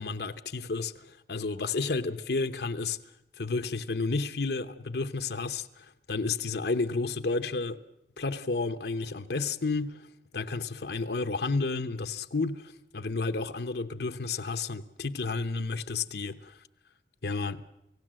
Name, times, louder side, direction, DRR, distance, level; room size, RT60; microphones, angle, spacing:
voice 1, 0.0-3.0 3.4-7.8 8.2-10.0 10.3-16.5 17.2-17.6, left 3 dB, 60° left, 0.9 m, -31 dB
29.5 x 17.5 x 7.6 m
head